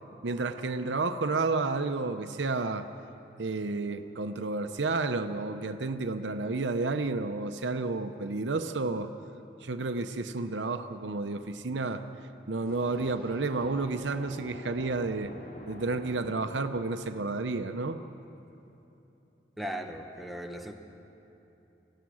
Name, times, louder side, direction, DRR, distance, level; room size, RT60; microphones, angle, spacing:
voice 1, 0.2-2.9 3.4-9.1 9.6-12.0 12.5-15.3 15.7-18.0, right 3 dB, 85° right, 8 dB, 0.8 m, -31 dB
sound 1, 12.6-18.3, equal, 55° left, 2.6 m, -47 dB
voice 2, 19.6-20.7, equal, ahead, 3 dB, 1.3 m, -37 dB
25.0 x 16.5 x 6.3 m, 3.0 s
head